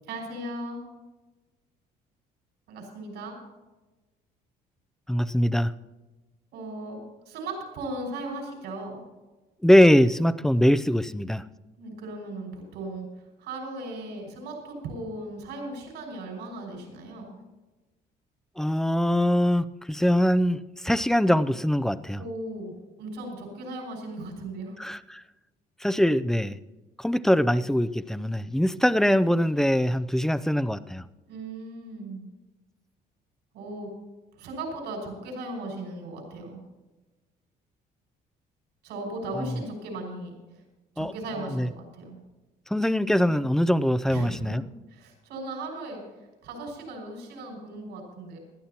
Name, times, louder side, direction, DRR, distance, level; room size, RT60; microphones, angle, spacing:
voice 1, 0.1-0.8 2.7-3.4 6.5-9.0 11.8-13.1 13.4-17.4 22.2-24.8 31.3-32.3 33.5-33.9 34.4-36.6 38.8-40.3 41.0-42.2 44.1-44.6 44.9-46.0 46.4-48.4, right 2 dB, 85° right, 5.9 m, -37 dB
voice 2, 5.1-5.7 9.6-11.5 18.6-22.2 24.8-25.2 25.8-26.6 27.0-31.0 39.4-39.5 41.0-41.1 41.5-41.7 42.7-44.6, equal, 5° left, 0.5 m, -22 dB
20.5 x 13.5 x 2.9 m
cardioid pair, 110°, 17 cm